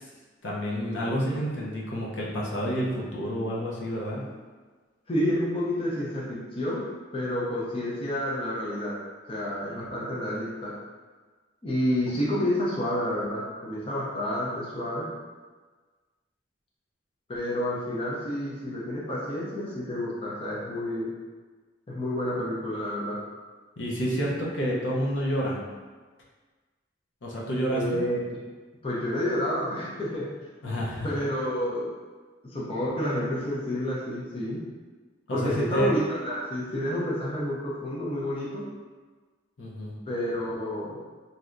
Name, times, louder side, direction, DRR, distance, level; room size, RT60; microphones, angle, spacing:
voice 1, 0.4-4.2 9.7-9.8 23.8-25.6 27.2-27.8 30.6-31.1 35.3-36.0 39.6-39.9, equal, 80° left, -4 dB, 0.7 m, -29 dB
voice 2, 5.1-6.9 7.1-9.0 9.3-10.7 11.6-15.1 17.3-21.1 21.9-23.2 27.7-28.4 28.8-30.3 31.0-31.9 32.5-34.6 35.3-38.6 40.1-41.0, left 1 dB, 30° left, -6 dB, 0.5 m, -29 dB
3.2 x 2.7 x 2.5 m, 1.4 s
head